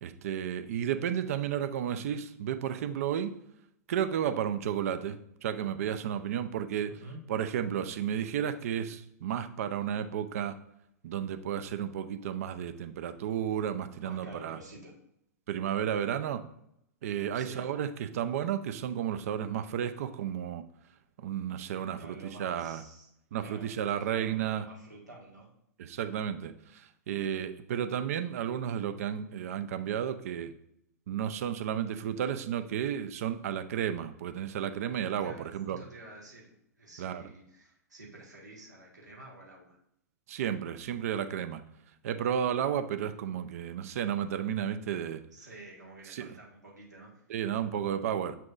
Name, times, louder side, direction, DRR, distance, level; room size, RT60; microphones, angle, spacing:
voice 1, 0.0-3.3 3.9-6.9 7.3-10.6 11.0-14.6 15.5-16.4 17.0-20.6 21.2-22.8 23.3-24.6 25.8-30.5 31.1-35.8 37.0-37.3 40.3-41.6 42.0-45.2 46.1-46.3 47.3-48.4, right 9 dB, 60° right, 10 dB, 0.5 m, -32 dB
voice 2, 6.9-7.2 14.0-14.9 17.3-17.6 22.0-23.1 23.4-25.5 35.2-36.5 36.8-39.8 45.3-47.1, right 2 dB, 90° right, -3 dB, 1.8 m, -49 dB
6.8 x 5.9 x 2.5 m, 0.76 s
figure-of-eight pair, 105°, 9 cm